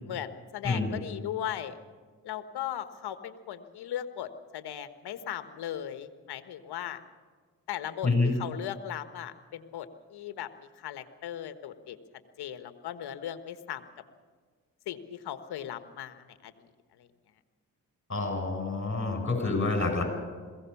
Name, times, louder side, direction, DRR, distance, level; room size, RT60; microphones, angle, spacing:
voice 1, 0.0-1.8 2.2-7.0 7.7-8.1 8.4-10.5 10.8-12.0 12.4-13.8 14.9-16.5, left 11 dB, 75° left, 10 dB, 1.4 m, -37 dB
voice 2, 0.6-0.9 8.0-8.3 18.1-20.0, left 3 dB, 30° left, 4 dB, 7.2 m, -27 dB
21.5 x 16.5 x 7.1 m, 1.5 s
supercardioid pair, 45°, 39 cm